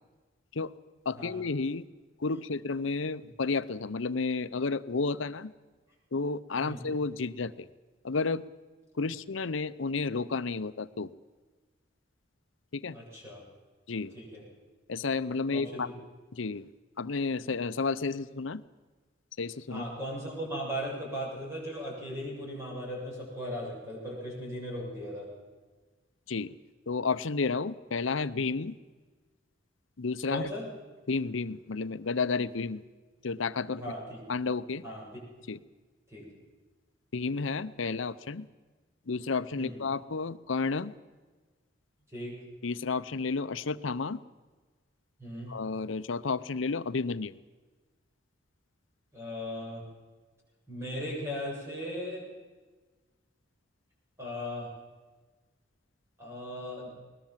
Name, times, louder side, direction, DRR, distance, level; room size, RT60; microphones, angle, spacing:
voice 1, 1.1-1.8 2.2-5.5 6.1-7.7 8.0-8.4 9.0-11.1 12.7-13.0 13.9-14.1 14.9-15.9 16.3-16.7 17.0-18.6 19.4-19.8 26.3-26.5 26.9-28.7 30.0-30.5 31.1-32.8 33.2-33.8 34.3-34.8 35.5-35.6 37.1-38.5 39.1-40.9 42.6-44.2 45.5-47.4, left 4 dB, 80° left, 15 dB, 0.7 m, -31 dB
voice 2, 12.9-13.4 14.1-14.4 15.5-15.8 19.7-25.3 30.3-30.7 33.7-34.2 34.8-35.2 36.1-36.3 39.6-39.8 42.1-42.3 45.2-45.5 49.1-49.8 50.7-52.3 54.2-54.7 56.2-56.9, equal, 15° right, -3 dB, 7.4 m, -37 dB
21.0 x 20.0 x 7.4 m, 1.3 s
head